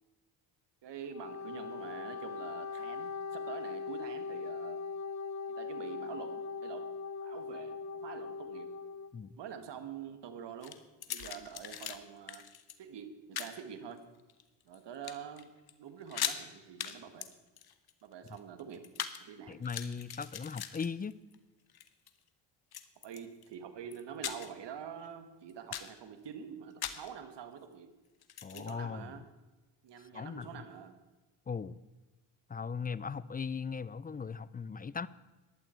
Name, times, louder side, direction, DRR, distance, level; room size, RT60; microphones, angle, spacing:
voice 1, 0.8-4.8 5.5-6.9 7.2-8.7 9.4-10.8 11.1-12.4 12.8-14.0 14.6-15.5 15.8-17.3 18.0-18.8 19.2-19.5 23.0-27.9 28.5-29.2 29.8-30.9, right 8 dB, 65° right, 9 dB, 1.8 m, -46 dB
Wind instrument woodwind instrument, 1.0-9.1, left 5 dB, 35° left, 1.0 m, -40 dB
sound 1, 10.6-12.0 12.3-12.7 13.3-13.6 14.2-14.8 15.0-15.4 15.7-15.8 16.0-16.4 16.8-17.0 17.2-19.2 19.5-21.3 21.7-22.1 22.7-23.5 23.9-24.6 25.0-25.1 25.5-26.0 26.8-27.1 28.2-28.7, left 9 dB, 55° left, 1.3 m, -40 dB
voice 2, 19.5-21.1 28.4-29.2 30.1-30.6 31.5-31.8 32.5-35.1, left 5 dB, 20° left, 19 dB, 0.4 m, -38 dB
15.5 x 11.5 x 4.5 m, 1.2 s
cardioid pair, 75°, 46 cm